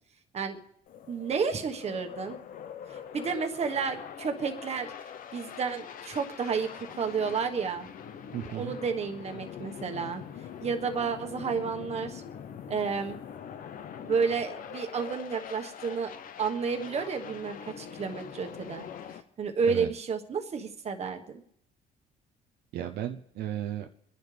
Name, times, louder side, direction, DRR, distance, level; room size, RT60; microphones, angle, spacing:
sound 1, 0.9-19.2, left 8 dB, 55° left, 0.9 m, -43 dB
voice 1, 1.1-2.4 2.9-4.9 5.3-7.9 8.5-10.2 10.6-12.2 12.7-13.2 14.0-16.1 16.4-18.9 19.4-21.4, right 5 dB, 40° right, 5 dB, 1.3 m, -31 dB
voice 2, 8.3-8.8 19.6-19.9 22.7-23.9, right 11 dB, 75° right, 5 dB, 0.7 m, -34 dB
26.0 x 10.5 x 3.4 m, 0.71 s
cardioid pair, 110°, 17 cm